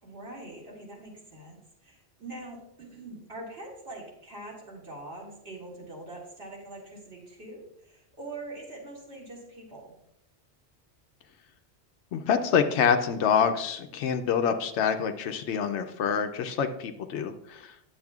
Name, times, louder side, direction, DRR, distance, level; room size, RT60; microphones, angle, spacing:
voice 1, 0.0-9.9, right 2 dB, 65° right, -3 dB, 2.3 m, -43 dB
voice 2, 12.1-17.7, left 7 dB, 90° left, 6 dB, 0.9 m, -26 dB
10.5 x 7.1 x 2.4 m, 0.77 s
omnidirectional pair, 1.1 m